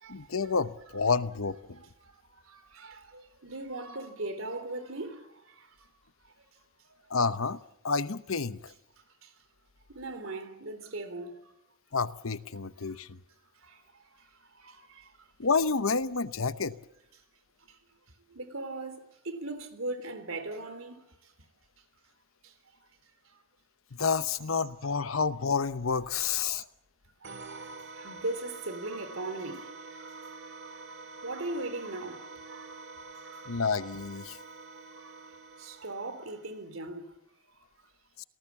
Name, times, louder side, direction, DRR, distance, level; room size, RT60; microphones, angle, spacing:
voice 1, 0.1-1.8 7.1-7.6 7.8-8.7 11.9-13.2 15.4-16.8 24.0-26.7 33.5-34.4, left 5 dB, 90° left, 0.9 m, -29 dB
voice 2, 2.0-5.7 6.9-7.0 9.2-9.3 9.9-11.5 12.8-12.9 13.6-13.8 14.2-14.3 14.6-15.1 17.7-17.8 18.3-21.0 22.4-22.5 27.2-33.5 34.9-35.2 35.6-37.1, right 2 dB, 80° right, 3.3 m, -40 dB
sound 1, 27.2-36.7, right 3 dB, 60° right, 2.4 m, -47 dB
28.0 x 18.5 x 7.2 m
head